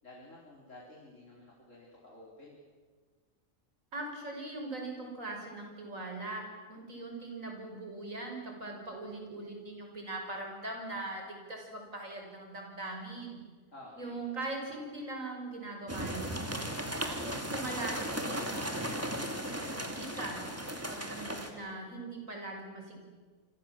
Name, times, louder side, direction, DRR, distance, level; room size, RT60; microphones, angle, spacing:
voice 1, 0.0-2.6 13.7-14.2, left 1 dB, 65° left, -4 dB, 4.9 m, -52 dB
voice 2, 3.9-13.4 14.0-16.4 17.0-20.4 20.9-23.0, right 2 dB, 75° right, 2 dB, 6.3 m, -41 dB
sound 1, 15.9-21.5, equal, 10° right, 2.8 m, -36 dB
28.0 x 26.0 x 7.7 m, 1.5 s
omnidirectional pair, 1.4 m